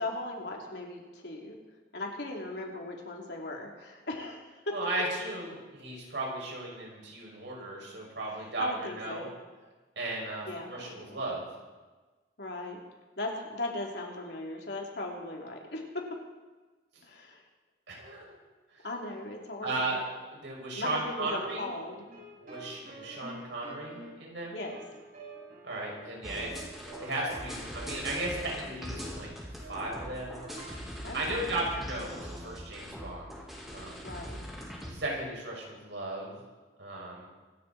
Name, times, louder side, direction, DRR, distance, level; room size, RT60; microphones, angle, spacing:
voice 1, 0.0-1.6 1.9-4.4 4.7-4.8 8.6-9.3 10.5-11.0 12.4-12.8 13.2-16.1 17.0-17.4 18.8-20.0 20.8-22.0 24.5-24.7 31.0-31.5 34.0-34.5, left 2 dB, 70° left, -1 dB, 3.2 m, -38 dB
voice 2, 4.7-9.2 9.9-11.5 17.9-18.4 18.7-18.9 19.6-20.0 20.3-21.7 22.4-24.6 25.6-26.6 27.0-29.3 29.7-30.4 31.1-33.3 33.7-34.0 34.8-36.4 36.8-37.3, right 2 dB, 85° right, -3 dB, 6.6 m, -36 dB
sound 1, 21.2-30.7, right 2 dB, 50° right, 7.5 m, -48 dB
sound 2, 26.2-34.9, equal, ahead, 3.5 m, -41 dB
25.5 x 12.5 x 4.3 m, 1.3 s
head